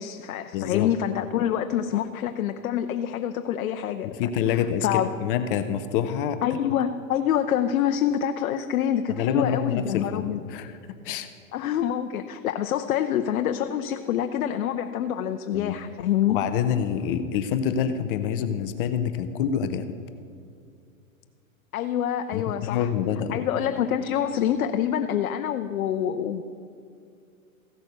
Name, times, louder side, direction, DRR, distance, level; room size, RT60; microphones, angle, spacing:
voice 1, 0.0-4.1 4.8-5.1 6.4-10.4 11.5-16.4 21.7-22.9 23.3-26.4, left 10 dB, 85° left, 8 dB, 0.7 m, -26 dB
voice 2, 0.5-0.9 4.1-6.4 9.1-10.8 11.0-11.3 15.5-15.8 16.3-19.9 22.3-23.5, left 8 dB, 40° left, 9 dB, 0.6 m, -27 dB
15.0 x 6.2 x 6.6 m, 2.4 s
hypercardioid pair, 140°, 42 cm